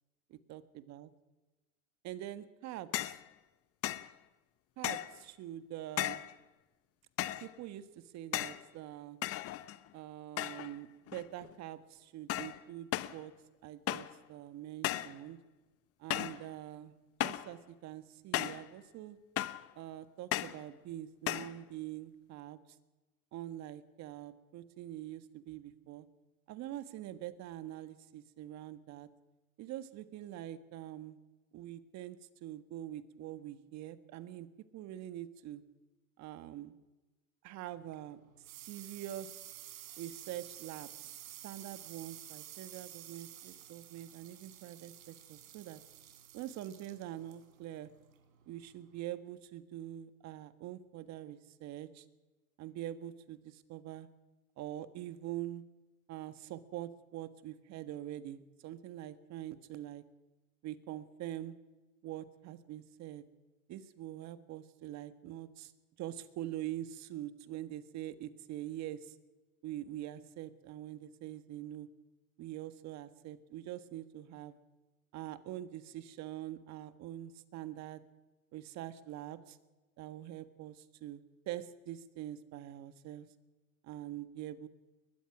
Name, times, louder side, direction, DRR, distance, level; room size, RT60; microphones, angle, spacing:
voice 1, 0.3-1.1 2.0-3.2 4.8-6.2 7.4-7.8 8.1-9.2 9.9-13.3 13.6-15.4 16.0-16.9 17.2-19.2 19.7-22.6 23.3-26.1 26.5-29.1 29.6-31.2 31.5-34.5 34.7-35.6 36.2-36.7 37.4-38.2 38.5-39.4 40.0-45.8 46.3-47.9 48.5-52.0 52.6-54.1 54.6-55.6 56.1-60.0 60.6-61.5 62.0-63.2 63.7-65.7 66.0-69.1 69.6-71.9 72.4-74.5 75.1-78.0 78.5-79.6 80.0-83.3 83.8-84.7, right 13 dB, 40° right, 12 dB, 1.6 m, -44 dB
sound 1, 2.9-3.2 3.8-4.1 4.8-5.2 6.0-6.3 7.2-7.5 8.3-8.6 9.2-9.9 10.4-10.8 11.1-11.5 12.3-12.6 12.9-13.2 13.9-14.2 14.8-15.2 16.1-16.4 17.2-17.5 18.3-18.7 19.4-19.7 20.3-20.6 21.3-21.6, left 14 dB, 35° left, 0.9 m, -36 dB
sound 2, 37.7-49.0, right 12 dB, 75° right, 3.5 m, -52 dB
21.5 x 21.0 x 6.1 m, 1.2 s
hypercardioid pair, 115°, 43 cm